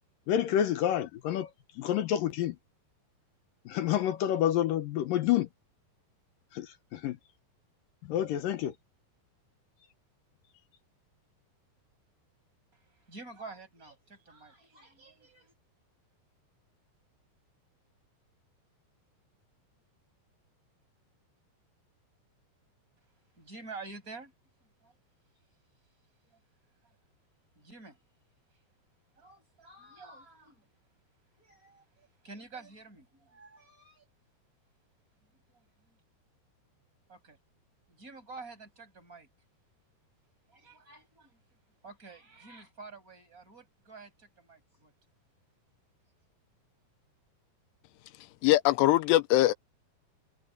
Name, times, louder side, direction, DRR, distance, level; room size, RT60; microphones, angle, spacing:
voice 1, 0.3-1.5 1.8-2.6 3.7-5.5 6.5-6.7 6.9-7.2 8.1-8.7, left 11 dB, 70° left, 2.3 m, -28 dB
voice 2, 12.7-15.5 23.4-24.3 24.8-25.0 26.2-26.4 26.8-27.0 27.6-28.0 29.2-30.7 31.4-34.1 35.5-36.0 37.1-37.4 37.9-39.3 40.5-41.4 41.7-44.9, right 3 dB, 20° right, 6.8 m, -49 dB
voice 3, 48.4-49.5, left 16 dB, 90° left, 2.8 m, -22 dB
omnidirectional pair, 4.9 m